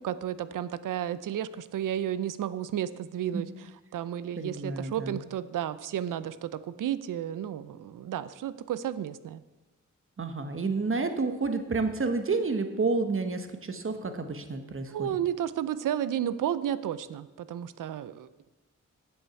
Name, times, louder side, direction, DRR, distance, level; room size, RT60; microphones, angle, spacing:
voice 1, 0.0-3.5 3.9-9.4 14.9-18.5, right 10 dB, 85° right, 15 dB, 0.5 m, -32 dB
voice 2, 4.3-5.2 10.2-15.1, right 3 dB, 40° right, 8 dB, 1.2 m, -30 dB
8.0 x 7.8 x 5.8 m, 1.1 s
cardioid pair, 45°, 31 cm